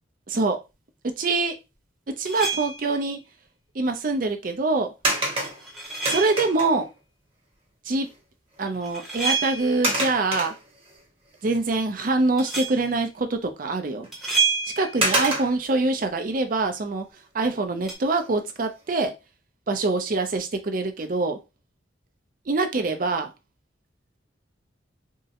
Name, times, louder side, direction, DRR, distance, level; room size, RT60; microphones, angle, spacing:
voice 1, 0.3-0.6 1.2-1.6 2.2-3.2 3.7-4.9 6.1-6.9 7.9-8.1 8.6-10.5 11.4-14.1 14.8-17.1 17.3-19.1 19.7-21.4 22.5-23.3, right 3 dB, 45° right, 6 dB, 0.5 m, -24 dB
sound 1, 2.3-3.0 5.4-6.6 8.7-9.9 12.4-12.9 14.1-15.1 17.9-18.0, right 5 dB, ahead, 0.8 m, -28 dB
sound 2, 5.0-6.9 8.1-8.2 8.6-8.8 9.8-11.0 11.5-11.6 14.0-14.1 15.0-15.8 18.0-18.4 18.9-19.0, right 1 dB, 30° right, 1.0 m, -27 dB
3.6 x 2.1 x 2.8 m, 0.26 s
head